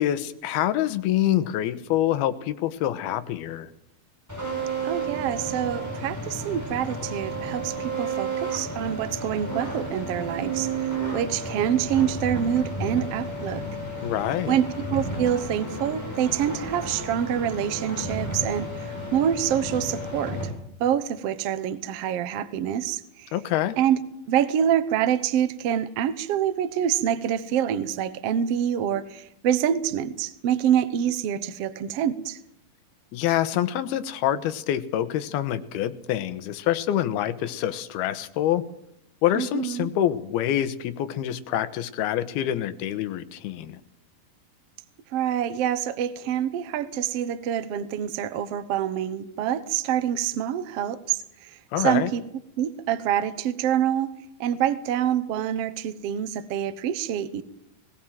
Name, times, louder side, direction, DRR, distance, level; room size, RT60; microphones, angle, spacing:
voice 1, 0.0-3.7 14.0-14.6 23.3-23.7 33.1-38.6 39.2-43.8 51.7-52.1, left 12 dB, 90° left, 11 dB, 3.0 m, -26 dB
sound 1, 4.3-20.5, right 2 dB, 5° right, 6.7 m, -32 dB
voice 2, 4.8-13.6 14.5-20.4 20.8-23.3 23.8-24.0 24.3-32.4 39.3-39.9 45.1-52.2 52.6-54.1 54.4-57.4, right 10 dB, 75° right, 12 dB, 1.4 m, -26 dB
20.0 x 18.0 x 7.5 m, 0.77 s
omnidirectional pair, 4.3 m